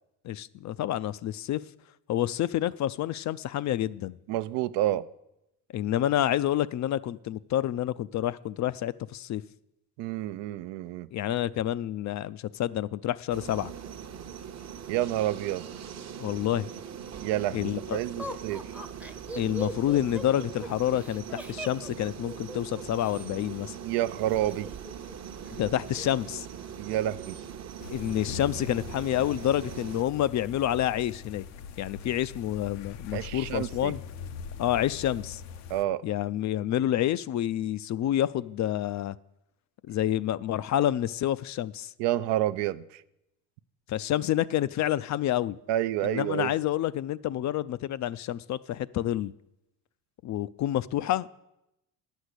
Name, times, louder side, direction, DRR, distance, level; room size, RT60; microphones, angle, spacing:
voice 1, 0.2-1.6 2.1-4.2 5.7-9.4 11.1-13.7 16.2-16.7 17.5-18.0 19.4-23.8 25.5-26.5 27.9-31.4 31.8-34.0 34.6-35.4 36.0-39.2 39.8-41.9 43.9-45.6 46.0-49.3 50.2-51.3, left 12 dB, 40° left, 0.4 m, -28 dB
voice 2, 4.3-5.0 10.0-11.1 14.9-15.7 17.2-18.6 23.8-24.7 26.8-27.4 33.1-33.9 35.7-36.0 42.0-43.0 45.7-46.5, right 13 dB, 70° right, 0.6 m, -29 dB
sound 1, 13.3-30.0, right 8 dB, 40° right, 0.9 m, -41 dB
Laughter, 18.2-23.3 24.3-25.2 25.5-25.6 25.9-26.3, right 1 dB, 5° right, 0.7 m, -40 dB
sound 2, 27.8-35.8, left 6 dB, 85° left, 0.8 m, -42 dB
9.5 x 6.3 x 8.2 m
supercardioid pair, 80°, 44 cm